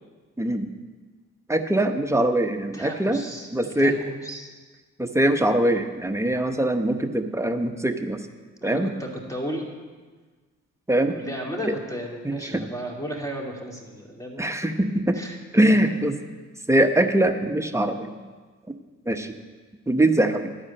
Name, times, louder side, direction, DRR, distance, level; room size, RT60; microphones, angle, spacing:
voice 1, 0.4-0.7 1.5-3.2 3.5-4.0 5.0-8.2 8.6-8.9 10.9-11.2 11.7-11.8 12.2-12.4 14.4-15.2 15.5-16.2 16.7-18.1 19.1-19.3 19.9-20.5, right 1 dB, 10° right, 5 dB, 0.9 m, -22 dB
voice 2, 2.7-3.5 3.8-4.5 8.6-9.7 11.1-14.4 15.1-16.0, equal, 10° left, -1 dB, 2.5 m, -34 dB
12.0 x 4.9 x 8.6 m, 1.4 s
cardioid pair, 65°, 31 cm